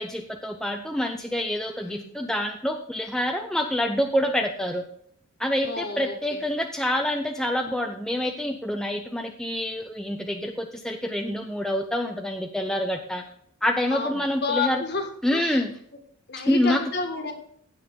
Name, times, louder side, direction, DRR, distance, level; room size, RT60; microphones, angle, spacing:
voice 1, 0.0-4.8 5.4-13.2 13.6-14.8 15.2-15.7 16.5-16.8, left 1 dB, 5° left, 3 dB, 0.6 m, -27 dB
voice 2, 1.8-2.2 5.6-6.4 13.9-15.6 16.3-17.3, left 4 dB, 50° left, 5 dB, 1.7 m, -30 dB
16.0 x 5.5 x 3.7 m, 0.65 s
head